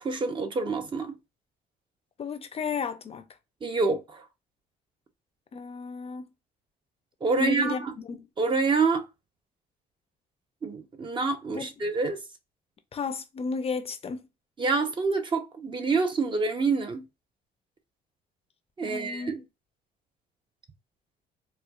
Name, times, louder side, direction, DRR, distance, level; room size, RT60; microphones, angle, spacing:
voice 1, 0.0-1.1 3.6-4.2 7.2-7.9 8.4-9.0 10.6-12.2 14.6-17.0 18.8-19.4, right 4 dB, 30° right, 0.7 m, -27 dB
voice 2, 2.2-3.3 5.5-6.2 7.3-8.2 11.5-11.7 12.9-14.2 18.8-19.3, left 5 dB, 35° left, 0.5 m, -33 dB
4.3 x 2.3 x 2.3 m
cardioid pair, 110°, 17 cm